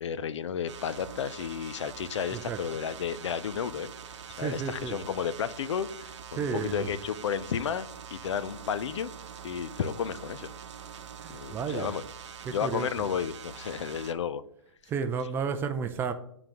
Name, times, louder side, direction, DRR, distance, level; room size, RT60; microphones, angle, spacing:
voice 1, 0.0-3.9 4.4-9.1 9.4-10.5 11.3-12.0 12.5-14.4, left 7 dB, 70° left, 15 dB, 0.5 m, -32 dB
sound 1, 0.7-14.1, right 7 dB, 65° right, 0.8 m, -44 dB
voice 2, 4.3-5.0 6.3-6.9 11.0-11.9 12.5-12.9 14.9-16.1, right 6 dB, 15° right, 8 dB, 0.4 m, -32 dB
11.0 x 3.9 x 2.9 m, 0.70 s
hypercardioid pair, 135°, 16 cm